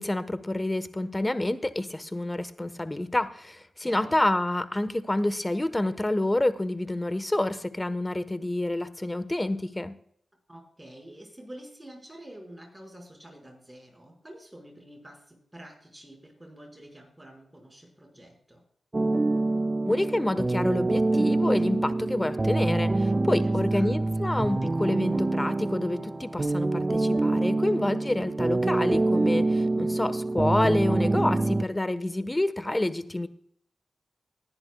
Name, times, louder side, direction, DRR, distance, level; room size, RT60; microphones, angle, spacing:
voice 1, 0.0-10.0 19.8-33.3, left 1 dB, 20° left, 13 dB, 1.1 m, -28 dB
voice 2, 3.8-4.2 10.5-18.6 23.4-24.2, right 1 dB, 15° right, 1 dB, 5.2 m, -48 dB
sound 1, 18.9-31.6, right 2 dB, 35° right, 0.4 m, -26 dB
20.0 x 10.5 x 2.3 m, 0.64 s
cardioid pair, 40°, 0 cm